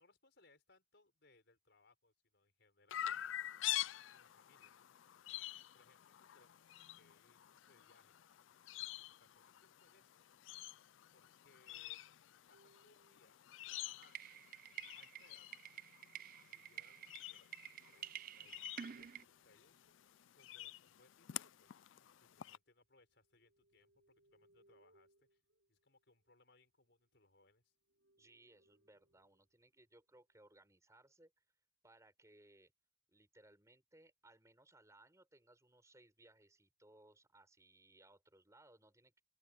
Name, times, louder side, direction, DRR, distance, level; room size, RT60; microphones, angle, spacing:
voice 1, 0.0-3.1 3.6-4.8 5.7-8.2 8.8-10.2 11.1-12.0 12.5-13.4 13.6-14.4 14.9-15.5 16.3-17.6 17.9-20.0 20.3-21.8 22.2-25.4 25.7-27.7, left 3 dB, 60° left, 6.0 m, -71 dB
Chirp tweet, 2.9-22.6, left 13 dB, 80° left, 0.4 m, -48 dB
sound 1, 12.5-15.7 17.4-22.5 22.9-27.3 27.7-29.5 30.3-30.8, right 1 dB, 70° right, 6.3 m, -77 dB
sound 2, 14.0-19.2, right 9 dB, 45° right, 0.5 m, -50 dB
voice 2, 28.2-31.4 31.8-32.7 33.1-39.2, right 2 dB, 15° right, 6.2 m, -66 dB
open air
head